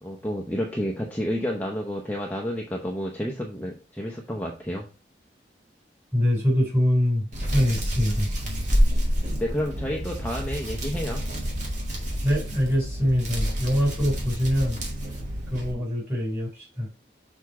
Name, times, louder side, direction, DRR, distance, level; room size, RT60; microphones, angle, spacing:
voice 1, 0.0-4.9 9.4-11.2, equal, 10° left, 0.7 m, -30 dB
voice 2, 6.1-8.3 12.2-14.8 15.5-16.9, equal, 15° right, 3.4 m, -24 dB
Hands, 7.3-15.7, equal, 40° right, 1.9 m, -28 dB
6.7 x 3.6 x 4.6 m
head